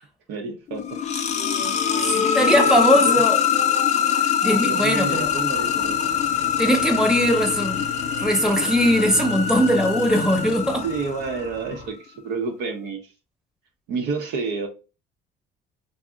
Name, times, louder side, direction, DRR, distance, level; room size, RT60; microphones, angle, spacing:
voice 1, 0.3-1.0 1.6-1.8 2.1-3.2 4.5-6.1 10.8-13.0 13.9-14.7, right 4 dB, 85° right, 0.7 m, -30 dB
sound 1, 0.7-11.5, left 8 dB, 45° left, 0.4 m, -23 dB
voice 2, 2.0-3.4 4.1-5.3 6.6-7.9 8.2-10.8, equal, 5° right, 0.7 m, -20 dB
sound 2, 4.9-11.9, left 3 dB, 30° right, 1.0 m, -39 dB
2.4 x 2.0 x 3.6 m
cardioid pair, 110°, 17 cm